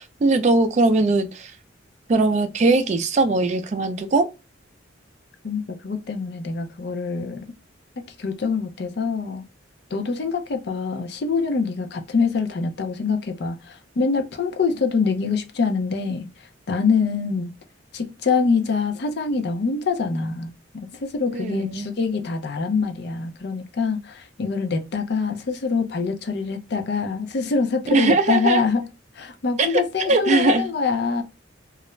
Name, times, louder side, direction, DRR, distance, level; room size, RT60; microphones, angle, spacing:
voice 1, 0.0-1.5 2.1-4.3 21.3-21.9 27.9-28.6 29.6-30.6, right 3 dB, 35° right, 0.3 m, -20 dB
voice 2, 5.4-7.5 8.0-9.4 9.9-17.5 17.9-20.5 21.0-28.8 29.1-31.2, left 5 dB, 55° left, 0.5 m, -25 dB
2.4 x 2.0 x 3.0 m
head